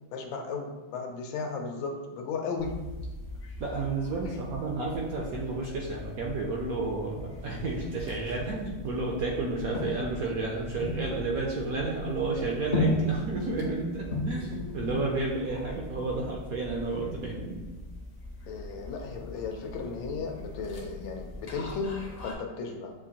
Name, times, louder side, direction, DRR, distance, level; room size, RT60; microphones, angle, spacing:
voice 1, 0.1-2.8 14.1-14.8 18.5-22.9, left 4 dB, 85° left, 2 dB, 1.4 m, -35 dB
sound 1, 2.6-22.3, left 1 dB, 50° left, 0.7 m, -37 dB
voice 2, 3.6-17.6, right 3 dB, 70° right, -2 dB, 0.9 m, -31 dB
7.3 x 2.5 x 2.8 m, 1.1 s
omnidirectional pair, 2.0 m